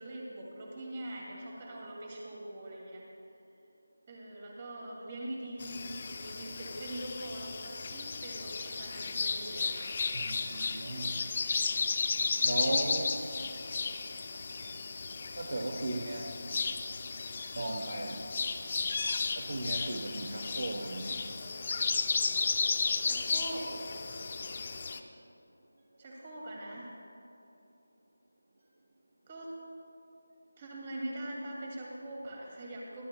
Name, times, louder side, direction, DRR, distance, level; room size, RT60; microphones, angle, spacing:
voice 1, 0.0-3.0 4.1-9.8 23.0-23.7 26.0-26.9 29.3-29.5 30.6-33.1, right 1 dB, 25° right, -3 dB, 2.3 m, -42 dB
sound 1, 5.6-25.0, left 4 dB, 35° left, 0.5 m, -34 dB
voice 2, 10.1-11.3 12.4-13.2 13.7-13.8 15.4-16.3 17.5-18.3 19.4-21.2, right 1 dB, 60° right, 2 dB, 0.9 m, -36 dB
24.0 x 11.0 x 2.3 m, 2.9 s
figure-of-eight pair, 170°, 0 cm